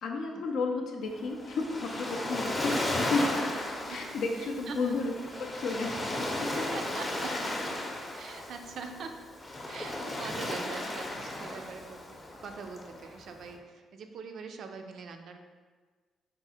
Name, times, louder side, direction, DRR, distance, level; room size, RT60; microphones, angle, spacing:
voice 1, 0.0-3.5 3.9-5.1 5.4-6.0 6.4-6.5 7.3-7.5, left 3 dB, 70° left, 2 dB, 0.3 m, -32 dB
Waves surf, 1.1-13.5, left 1 dB, 25° left, 0.6 m, -35 dB
voice 2, 4.4-5.0 6.6-7.8 8.2-9.2 9.7-12.0 12.4-15.4, right 5 dB, 65° right, 5 dB, 0.3 m, -43 dB
3.6 x 2.0 x 4.1 m, 1.4 s
cardioid pair, 90°, 0 cm